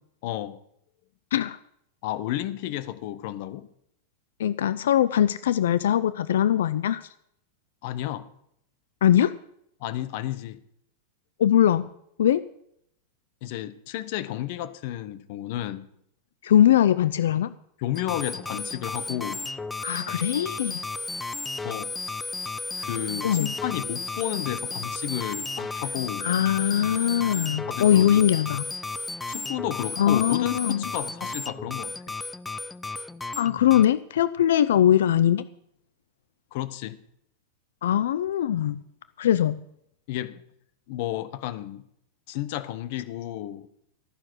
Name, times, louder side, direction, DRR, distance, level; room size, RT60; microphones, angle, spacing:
voice 1, 0.2-0.6 2.0-3.7 7.8-8.3 9.8-10.6 13.4-15.9 17.8-19.4 21.6-21.9 22.8-26.3 27.7-28.2 29.3-31.9 36.5-37.0 40.1-40.4 40.9-41.8 42.3-43.7, left 13 dB, 50° left, 15 dB, 1.1 m, -32 dB
voice 2, 4.4-7.0 9.0-9.3 11.4-11.8 12.2-12.4 16.4-17.5 19.8-20.8 23.2-23.5 26.2-28.6 30.0-30.9 33.4-35.4 37.8-38.8 39.2-39.6, left 10 dB, 85° left, 16 dB, 0.6 m, -21 dB
sound 1, 18.0-33.9, left 3 dB, 5° left, 0.4 m, -34 dB
13.5 x 9.8 x 6.3 m, 0.73 s
supercardioid pair, 160°, 0 cm